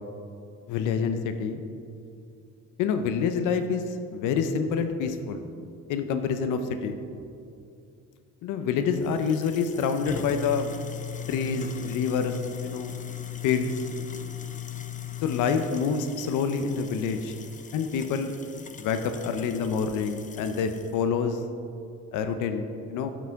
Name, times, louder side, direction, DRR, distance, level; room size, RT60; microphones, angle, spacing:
voice 1, 0.7-1.6 2.8-5.4 5.9-7.0 8.4-10.7 11.3-12.9 13.4-13.7 15.2-17.3 17.7-18.3 18.8-21.4 22.1-23.1, left 6 dB, 90° left, 8 dB, 0.5 m, -27 dB
sound 1, 8.9-21.0, left 9 dB, 25° left, 0.4 m, -39 dB
9.0 x 6.0 x 3.4 m, 2.5 s
cardioid pair, 90°, 30 cm